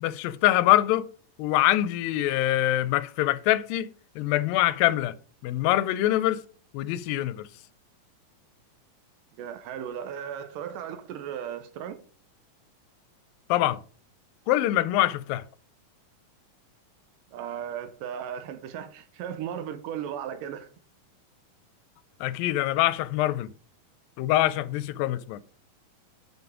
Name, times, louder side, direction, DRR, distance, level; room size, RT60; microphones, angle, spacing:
voice 1, 0.0-1.1 1.4-3.9 4.2-5.2 5.4-6.4 6.7-7.5 13.5-13.8 14.5-15.4 22.2-23.5 24.2-25.4, left 15 dB, 85° left, 2.3 m, -24 dB
voice 2, 9.4-12.0 17.3-20.7, right 9 dB, 75° right, 2.3 m, -36 dB
7.0 x 6.5 x 4.9 m
omnidirectional pair, 4.0 m